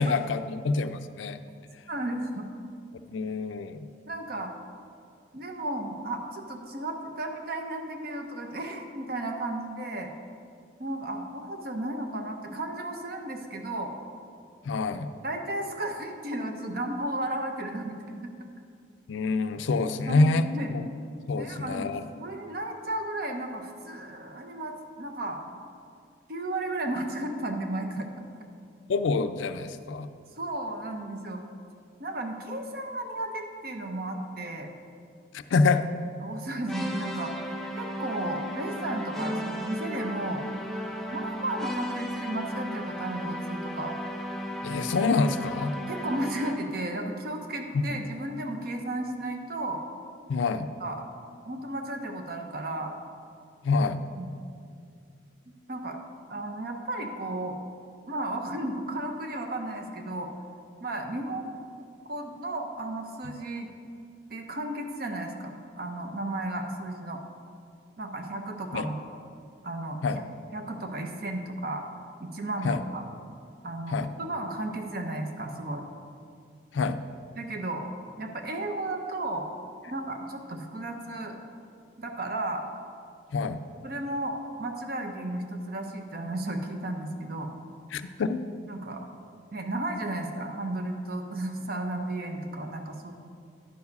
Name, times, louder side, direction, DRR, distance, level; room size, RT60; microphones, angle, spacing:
voice 1, 0.0-1.4 3.1-3.9 14.6-15.1 19.1-20.9 21.3-22.0 28.9-30.1 35.3-35.9 44.6-45.7 47.7-47.9 50.3-50.7 53.6-54.0 68.7-68.9 70.0-70.2 72.6-72.8 73.9-74.1 76.7-77.0 83.3-83.6 87.9-88.4, left 3 dB, 80° left, 10 dB, 0.4 m, -26 dB
voice 2, 1.9-2.5 4.1-4.5 5.3-10.1 10.8-14.0 15.2-18.3 20.1-20.7 21.4-25.4 26.3-28.1 30.4-31.4 32.0-34.7 36.2-37.3 37.8-40.4 41.1-44.0 45.9-49.8 50.8-51.0 51.5-52.9 54.1-54.3 55.7-56.0 56.3-57.6 58.1-60.3 60.8-61.5 62.1-63.7 64.3-67.2 68.0-69.0 69.6-70.0 70.5-71.8 72.2-73.0 73.6-75.8 77.4-77.8 78.2-79.5 79.9-81.4 82.0-82.6 83.8-87.5 88.7-89.1 89.5-93.1, right 1 dB, 50° right, 4 dB, 0.7 m, -34 dB
sound 1, 36.7-46.8, equal, ahead, 0.4 m, -35 dB
10.5 x 4.7 x 5.3 m, 2.3 s
head